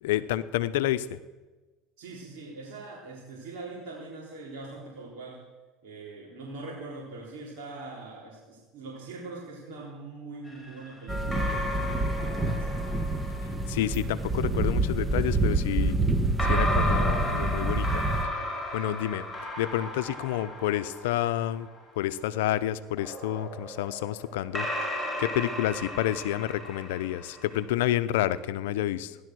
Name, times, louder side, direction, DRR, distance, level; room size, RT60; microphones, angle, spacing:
voice 1, 0.0-1.2 13.7-15.9 16.5-18.0 18.7-19.2 19.6-21.7 22.0-24.7 25.2-29.2, left 13 dB, 80° left, 14 dB, 0.7 m, -29 dB
voice 2, 2.0-5.4 5.8-12.8 18.9-19.0, right 3 dB, 70° right, -5 dB, 3.9 m, -42 dB
sound 1, 10.5-13.9 16.4-21.8 23.0-27.6, left 1 dB, ahead, 5.0 m, -34 dB
sound 2, 11.1-18.2, right 2 dB, 15° right, 1.3 m, -27 dB
15.5 x 11.5 x 6.3 m, 1.2 s
supercardioid pair, 95°, 0 cm